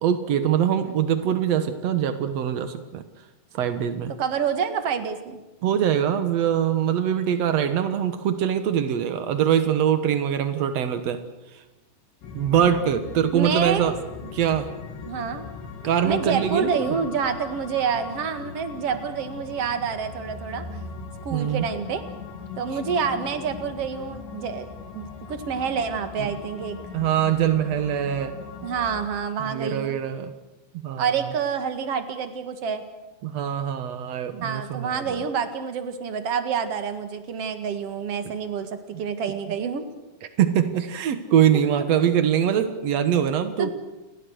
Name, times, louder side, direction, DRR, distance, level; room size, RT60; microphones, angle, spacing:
voice 1, 0.0-3.0 3.5-4.1 5.6-11.2 11.5-11.6 12.3-13.9 14.3-14.7 15.8-17.0 21.3-21.6 26.2-26.3 26.9-28.4 29.4-30.3 30.8-31.3 33.2-35.2 40.4-43.7, right 9 dB, 85° right, 9 dB, 1.4 m, -23 dB
voice 2, 4.2-5.4 12.5-12.8 13.3-13.9 15.1-15.4 16.0-20.7 21.2-22.0 22.6-24.7 24.9-26.8 28.6-30.0 31.0-32.8 34.3-39.9 41.5-41.6 43.6-43.7, right 6 dB, 50° right, 8 dB, 2.0 m, -28 dB
sound 1, 12.2-29.1, left 5 dB, 90° left, 5.2 m, -39 dB
29.5 x 21.0 x 6.5 m, 1.0 s
omnidirectional pair, 5.0 m